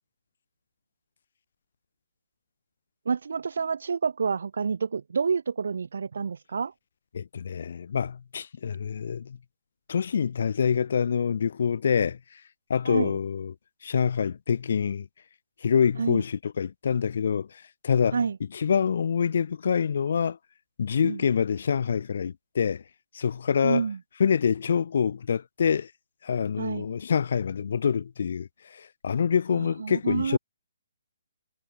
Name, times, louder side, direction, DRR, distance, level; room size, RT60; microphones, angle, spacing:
voice 1, 3.0-6.7 12.8-13.2 16.0-16.2 18.1-18.4 21.0-21.2 23.6-24.0 26.6-26.9 29.5-30.4, right 5 dB, 60° right, 5.1 m, -28 dB
voice 2, 7.1-9.4 9.9-12.2 12.7-13.5 13.8-15.1 15.6-18.2 18.5-20.4 20.8-22.8 23.1-23.8 24.2-25.9 26.2-30.4, left 7 dB, 45° left, 4.3 m, -26 dB
hypercardioid pair, 180°, 0 cm